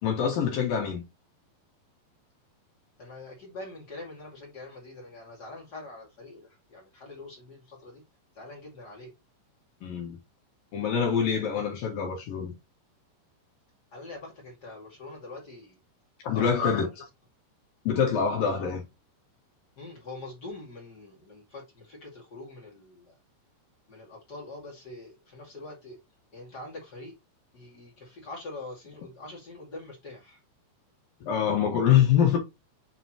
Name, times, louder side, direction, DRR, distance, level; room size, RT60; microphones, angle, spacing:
voice 1, 0.0-1.0 9.8-10.2 10.7-12.5 16.2-16.9 17.8-18.8 31.2-32.4, left 8 dB, 60° left, 2.8 m, -25 dB
voice 2, 3.0-8.0 8.3-9.1 11.3-11.4 13.9-15.8 16.3-16.9 18.4-18.7 19.7-23.2 23.9-26.0 26.3-27.1 27.5-30.4, left 2 dB, 45° left, 1.3 m, -44 dB
8.1 x 4.1 x 2.9 m
omnidirectional pair, 5.4 m